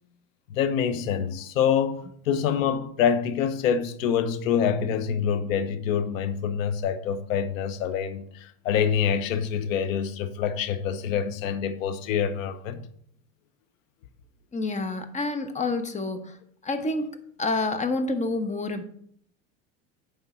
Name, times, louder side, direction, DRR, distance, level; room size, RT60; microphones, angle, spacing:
voice 1, 0.5-12.8, left 8 dB, 90° left, 1.0 m, -26 dB
voice 2, 14.5-16.4 16.6-18.8, left 2 dB, 20° left, 1.0 m, -28 dB
9.5 x 3.7 x 5.5 m
supercardioid pair, 110°, 39 cm